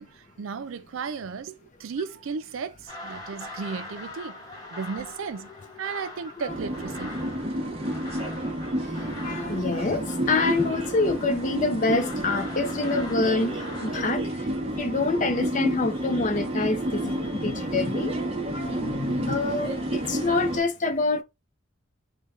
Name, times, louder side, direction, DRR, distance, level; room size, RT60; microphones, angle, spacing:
voice 1, 0.0-4.4 4.7-5.5 5.8-7.1 8.8-9.2, right 5 dB, 80° right, 0.4 m, -35 dB
sound 1, 2.9-14.0, left 2 dB, 20° left, 1.0 m, -42 dB
sound 2, 6.5-20.6, right 1 dB, 30° right, 0.7 m, -30 dB
voice 2, 9.2-14.2 14.8-18.1 18.5-21.2, left 3 dB, 40° left, 0.5 m, -26 dB
3.2 x 2.2 x 3.6 m
head